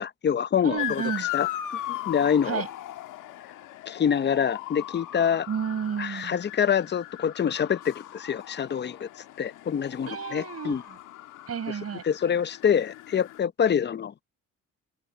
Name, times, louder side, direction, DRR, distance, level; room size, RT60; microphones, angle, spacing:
voice 1, 0.0-1.0 1.3-1.5 1.9-2.6 3.9-5.5 6.0-9.1 9.4-10.8 12.0-14.1, left 8 dB, 35° left, 0.7 m, -26 dB
voice 2, 0.6-1.3 2.4-2.7 5.5-6.3 10.1-11.0 11.5-12.0, right 7 dB, 50° right, 4.9 m, -32 dB
Motor vehicle (road) / Siren, 0.8-13.4, left 13 dB, 85° left, 2.0 m, -38 dB
cardioid pair, 90°, 30 cm